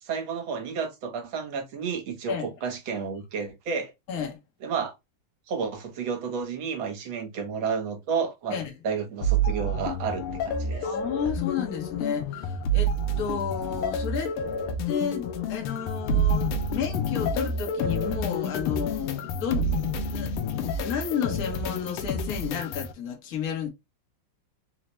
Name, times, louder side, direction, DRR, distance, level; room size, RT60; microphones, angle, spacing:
voice 1, 0.0-3.9 4.6-4.9 5.5-8.6 8.8-10.9, right 6 dB, 70° right, 1.6 m, -31 dB
voice 2, 4.1-4.4 8.5-8.7 10.8-14.4 14.9-20.3 20.8-23.7, left 7 dB, 50° left, 1.3 m, -32 dB
sound 1, 9.2-22.9, equal, 85° left, 1.6 m, -28 dB
4.2 x 2.1 x 3.0 m
omnidirectional pair, 2.4 m